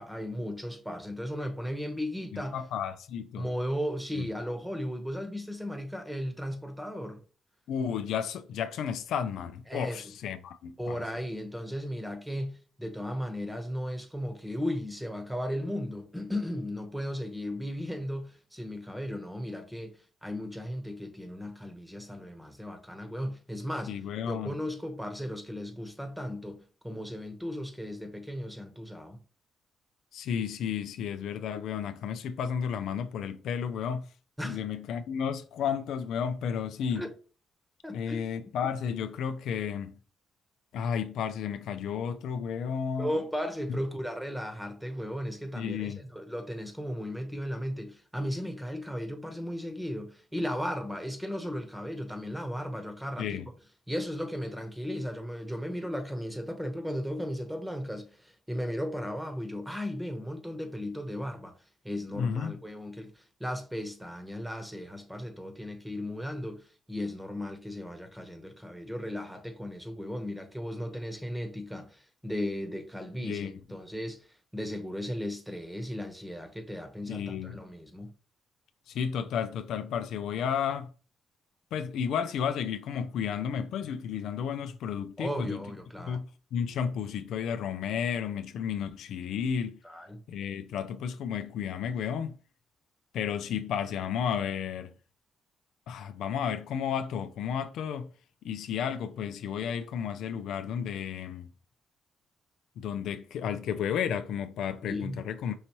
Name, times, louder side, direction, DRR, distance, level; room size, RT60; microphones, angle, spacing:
voice 1, 0.0-2.6 3.4-7.2 9.7-10.1 10.8-29.2 34.4-34.6 37.0-37.1 37.8-38.2 43.0-53.4 53.9-61.6 61.8-74.3 74.5-78.1 85.2-86.2 89.8-90.2 104.8-105.2, equal, 5° right, 1.0 m, -36 dB
voice 2, 2.3-3.5 4.2-4.3 7.7-11.0 23.9-24.6 30.1-34.1 34.4-37.1 37.9-40.0 40.7-43.1 43.7-43.8 45.5-46.0 53.2-53.5 62.1-62.6 73.2-73.5 77.1-77.6 78.9-80.9 81.7-85.6 86.0-89.8 90.3-92.4 93.1-94.9 95.9-98.1 98.4-101.5 102.8-105.5, left 7 dB, 85° left, 0.4 m, -32 dB
5.5 x 2.7 x 3.0 m
cardioid pair, 75°, 0 cm